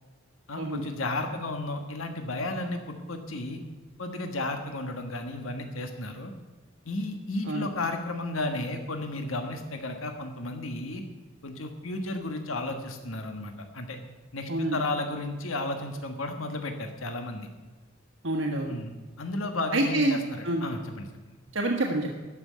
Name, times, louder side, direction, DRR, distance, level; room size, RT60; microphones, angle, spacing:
voice 1, 0.5-3.6 4.0-6.3 6.8-11.0 11.4-14.0 14.3-17.5 18.7-21.4, left 2 dB, 85° left, 5 dB, 1.5 m, -33 dB
voice 2, 18.2-18.7 19.7-20.2 20.4-20.6 21.5-22.1, right 2 dB, 75° right, 0 dB, 1.5 m, -26 dB
14.0 x 6.3 x 9.2 m, 1.3 s
head